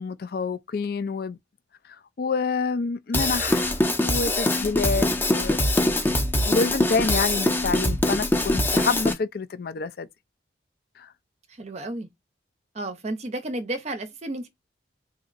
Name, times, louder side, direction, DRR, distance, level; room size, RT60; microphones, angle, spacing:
voice 1, 0.0-1.4 2.2-5.6 6.4-10.1 11.0-11.1, left 4 dB, 55° left, 0.4 m, -27 dB
Drum kit / Drum, 3.1-9.1, left 1 dB, 10° left, 0.6 m, -23 dB
voice 2, 11.5-12.1 12.7-14.5, right 2 dB, 35° right, 0.6 m, -32 dB
4.1 x 2.6 x 2.4 m
head